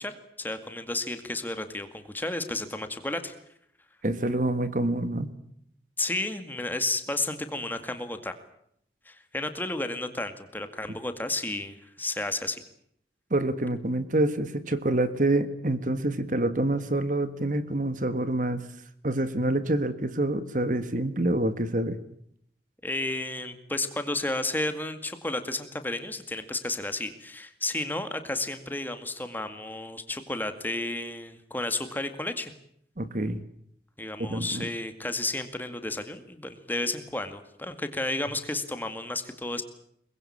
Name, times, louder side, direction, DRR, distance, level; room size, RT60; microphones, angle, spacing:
voice 1, 0.0-3.3 6.0-8.3 9.1-12.6 22.8-32.5 34.0-39.6, left 2 dB, 10° left, 9 dB, 2.1 m, -32 dB
voice 2, 4.0-5.3 13.3-18.7 19.0-22.0 33.0-33.4 34.2-34.7, right 1 dB, 45° right, 12 dB, 1.6 m, -27 dB
23.5 x 21.0 x 8.7 m, 0.70 s
head